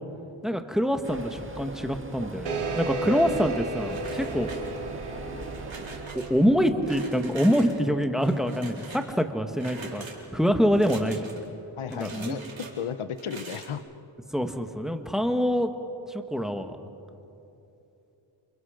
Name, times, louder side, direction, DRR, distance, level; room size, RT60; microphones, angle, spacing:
voice 1, 0.4-4.5 6.1-10.0 10.3-11.3 12.0-12.4 14.3-15.7 16.1-16.8, equal, ahead, 6 dB, 1.6 m, -25 dB
sound 1, 1.0-6.1, right 2 dB, 25° right, 1.8 m, -41 dB
sound 2, 2.5-7.5, right 2 dB, 90° right, 2.0 m, -34 dB
sound 3, 3.9-5.0 5.4-6.3 6.8-7.8 8.2-9.1 9.5-10.2 10.7-11.5 11.9-12.7 13.1-13.7, right 3 dB, 70° right, 4.2 m, -43 dB
voice 2, 11.8-13.8, left 8 dB, 85° left, 12 dB, 0.9 m, -34 dB
29.5 x 28.5 x 5.2 m, 2.8 s
wide cardioid pair, 85°, 48 cm